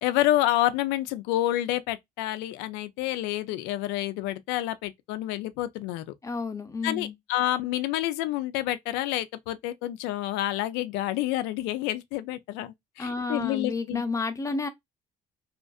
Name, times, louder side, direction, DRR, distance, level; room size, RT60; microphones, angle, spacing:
voice 1, 0.0-6.0 6.8-14.0, left 14 dB, 85° left, 0.4 m, -28 dB
voice 2, 6.2-7.1 13.0-14.7, left 4 dB, 20° left, 0.7 m, -31 dB
2.5 x 2.4 x 2.3 m
supercardioid pair, 75°, 17 cm